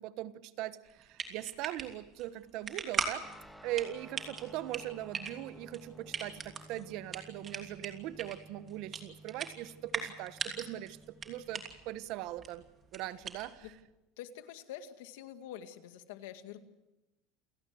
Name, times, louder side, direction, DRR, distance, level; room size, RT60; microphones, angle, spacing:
voice 1, 0.0-3.2 3.6-11.0 11.2-12.7 12.9-13.7, right 14 dB, 55° right, 14 dB, 1.2 m, -40 dB
sound 1, 0.9-13.8, right 5 dB, 25° right, 3.0 m, -41 dB
Guitar, 3.2-12.9, equal, ahead, 1.9 m, -55 dB
voice 2, 14.2-16.6, left 10 dB, 85° left, 8 dB, 2.1 m, -46 dB
29.0 x 17.5 x 7.8 m, 1.0 s
supercardioid pair, 145°, 0 cm